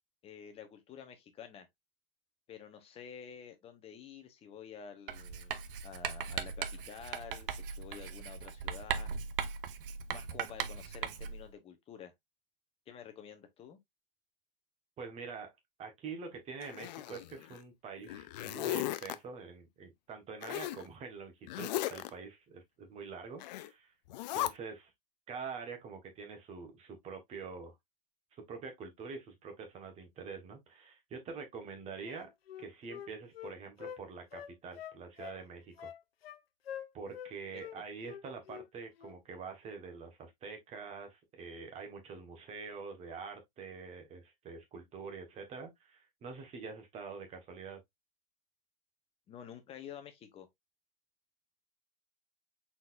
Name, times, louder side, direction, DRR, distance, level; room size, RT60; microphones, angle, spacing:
voice 1, 0.2-1.7 2.5-5.6 5.8-9.1 10.1-12.1 12.9-13.8 37.5-37.8 49.3-50.5, left 8 dB, 20° left, 0.9 m, -50 dB
Writing, 5.1-11.5, right 7 dB, 70° right, 0.8 m, -39 dB
voice 2, 15.0-15.5 15.8-23.9 24.3-24.9 25.3-27.7 28.5-32.3 32.6-35.9 36.9-47.8, right 5 dB, 20° right, 1.4 m, -45 dB
Zipper (clothing), 16.6-17.6 18.0-19.2 20.4-20.8 21.5-22.1 23.4-23.7 24.1-24.5, left 14 dB, 50° left, 0.5 m, -36 dB
Wind instrument woodwind instrument, 32.1-34.0 34.3-35.4 35.8-36.4 36.7-37.3 37.6-37.8 38.1-38.7 39.0-39.2, left 9 dB, 85° left, 0.7 m, -46 dB
4.2 x 3.9 x 2.5 m
hypercardioid pair, 130°, 29 cm